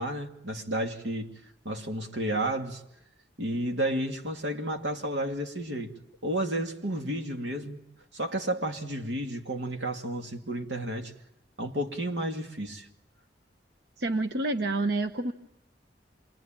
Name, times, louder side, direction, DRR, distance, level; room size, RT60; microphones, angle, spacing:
voice 1, 0.0-1.3 1.6-2.8 3.4-5.9 6.2-7.8 8.1-11.1 11.6-12.9, right 1 dB, 85° right, 2.5 m, -31 dB
voice 2, 14.0-15.3, right 2 dB, 65° right, 1.0 m, -28 dB
27.5 x 22.5 x 9.0 m
head